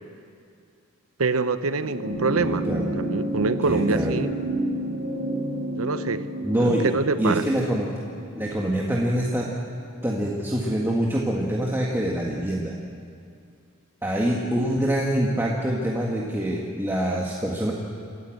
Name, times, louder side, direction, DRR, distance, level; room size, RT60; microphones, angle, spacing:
voice 1, 1.2-2.7 3.0-4.3 5.8-6.3 6.5-7.4, right 4 dB, 90° right, 12 dB, 0.8 m, -25 dB
sound 1, 1.7-10.4 11.6-11.7, right 1 dB, 65° right, 5.4 m, -30 dB
voice 2, 2.4-2.9 3.6-4.2 6.4-6.9 7.2-7.9 8.3-9.5 10.0-12.7 14.0-17.7, right 1 dB, 10° right, -3 dB, 1.8 m, -25 dB
28.5 x 13.5 x 7.9 m, 2.4 s
head